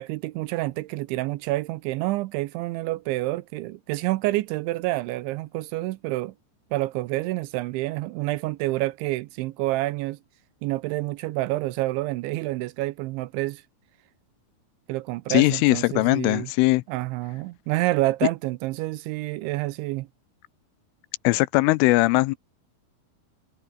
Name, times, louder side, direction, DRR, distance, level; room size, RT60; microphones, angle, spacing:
voice 1, 0.0-6.3 6.7-10.2 10.6-13.6 14.9-16.5 16.9-20.1, right 18 dB, 80° right, 2.9 m, -28 dB
voice 2, 15.3-16.8 21.2-22.4, left 21 dB, 85° left, 3.1 m, -20 dB
omnidirectional pair, 5.8 m